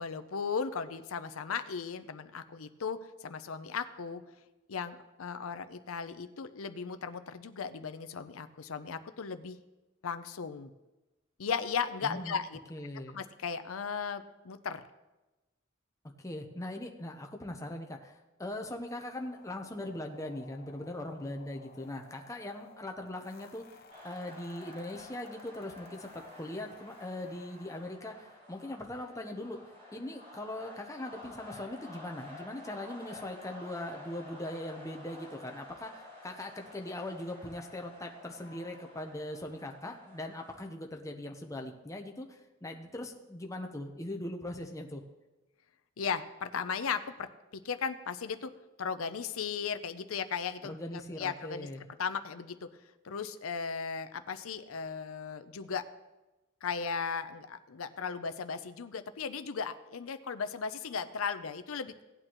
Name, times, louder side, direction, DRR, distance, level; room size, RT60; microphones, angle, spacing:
voice 1, 0.0-4.2 4.7-9.6 10.0-10.7 11.4-12.6 13.1-14.8 46.0-48.5 48.8-51.7 52.0-52.7 53.0-55.8 56.6-61.9, left 6 dB, 80° left, 11 dB, 0.6 m, -36 dB
voice 2, 12.0-12.4 12.7-13.2 16.2-29.6 29.9-45.0 50.6-51.8, left 1 dB, 15° left, 3 dB, 0.8 m, -40 dB
sound 1, 19.1-27.9, left 3 dB, 45° left, 1.0 m, -58 dB
sound 2, 23.9-40.7, left 2 dB, 40° right, 4.3 m, -51 dB
17.0 x 8.8 x 3.0 m, 1.1 s
head